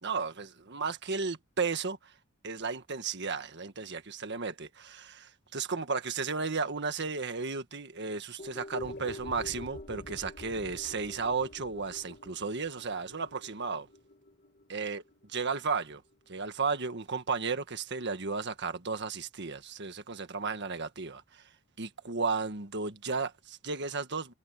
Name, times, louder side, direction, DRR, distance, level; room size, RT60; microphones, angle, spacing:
voice 1, 0.0-2.1 2.4-13.9 14.7-15.0 15.3-16.0 16.3-21.4 21.8-24.3, right 4 dB, 55° right, 1.6 m, -34 dB
sound 1, 8.4-16.8 17.1-17.2, left 1 dB, 40° left, 2.2 m, -47 dB
sound 2, 8.8-13.4, equal, 60° left, 6.8 m, -51 dB
head